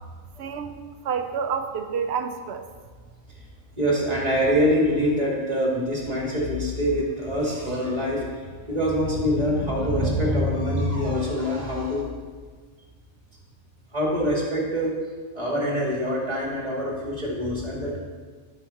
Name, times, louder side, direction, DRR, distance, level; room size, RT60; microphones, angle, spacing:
voice 1, 0.4-0.8 1.0-2.6, right 6 dB, 60° right, 8 dB, 0.9 m, -28 dB
voice 2, 3.8-12.1 13.9-15.0 15.3-18.0, equal, 30° right, -3 dB, 2.3 m, -24 dB
13.0 x 5.6 x 4.3 m, 1.5 s
omnidirectional pair, 1.4 m